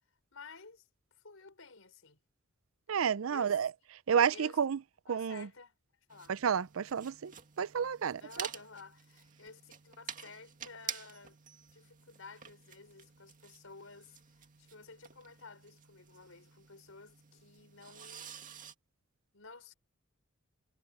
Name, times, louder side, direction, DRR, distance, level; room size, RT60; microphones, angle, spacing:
voice 1, 0.3-2.2 3.3-3.6 4.1-4.6 5.1-5.8 6.1-6.4 8.2-11.4 11.7-14.2 14.6-18.4 19.3-19.7, left 4 dB, 85° left, 4.6 m, -53 dB
voice 2, 2.9-3.7 4.1-4.8 5.1-5.5 6.3-7.3 7.6-8.5, right 7 dB, 80° right, 0.5 m, -30 dB
sound 1, 6.1-18.7, right 8 dB, 40° right, 2.1 m, -49 dB
head